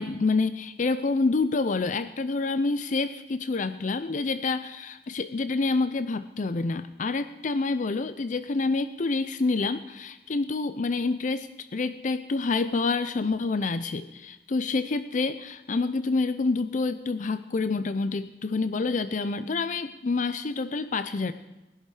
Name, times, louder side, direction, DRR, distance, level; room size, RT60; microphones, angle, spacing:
voice 1, 0.0-21.3, left 3 dB, 45° left, 12 dB, 0.5 m, -27 dB
20.0 x 11.5 x 4.9 m, 1.0 s
head